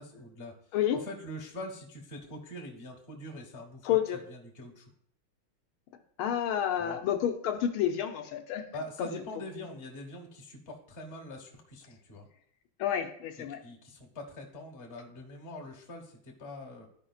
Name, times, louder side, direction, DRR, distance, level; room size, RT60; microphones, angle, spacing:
voice 1, 0.0-4.9 6.7-7.0 8.7-12.3 13.6-16.9, left 1 dB, 35° left, 0 dB, 1.2 m, -44 dB
voice 2, 3.8-4.2 6.2-8.6 9.0-9.1 12.8-13.6, left 10 dB, 85° left, 5 dB, 1.6 m, -29 dB
13.0 x 5.1 x 2.3 m, 0.66 s
omnidirectional pair, 2.3 m